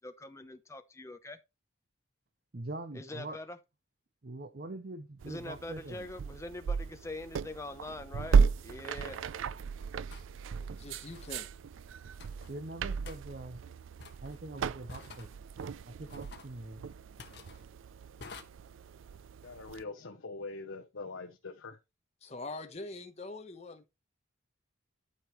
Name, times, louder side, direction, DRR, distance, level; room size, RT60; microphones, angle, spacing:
voice 1, 0.0-1.4 2.9-3.6 5.3-8.4 8.6-9.2, left 2 dB, 15° left, 0.7 m, -43 dB
voice 2, 2.5-3.4 4.2-6.1 12.5-13.6 14.2-15.3 15.9-16.8, right 2 dB, 45° right, 0.7 m, -43 dB
sound 1, 5.2-19.8, right 6 dB, 75° right, 0.4 m, -34 dB
sound 2, 8.4-8.5 10.1-10.3 11.1-11.4 12.2-12.5 13.1-13.2 14.0-14.4 14.9-15.3 16.1-16.5 17.2-17.6 18.2-18.4, left 4 dB, 55° left, 1.4 m, -49 dB
voice 3, 10.6-11.5 22.2-23.8, left 2 dB, 30° left, 1.0 m, -43 dB
voice 4, 19.4-21.8, left 3 dB, 75° left, 0.9 m, -43 dB
12.5 x 5.1 x 3.1 m
head